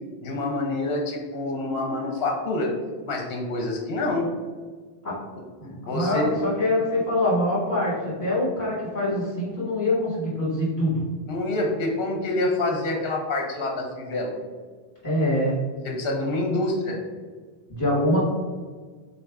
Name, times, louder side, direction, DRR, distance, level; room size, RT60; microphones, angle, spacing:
voice 1, 0.2-2.7 3.1-4.3 5.9-6.4 11.3-14.4 15.8-17.0, left 2 dB, 65° left, 1 dB, 0.9 m, -27 dB
voice 2, 5.6-11.0 15.0-15.6 17.7-18.2, left 1 dB, 40° left, -11 dB, 1.4 m, -24 dB
4.0 x 2.5 x 3.4 m, 1.5 s
omnidirectional pair, 1.1 m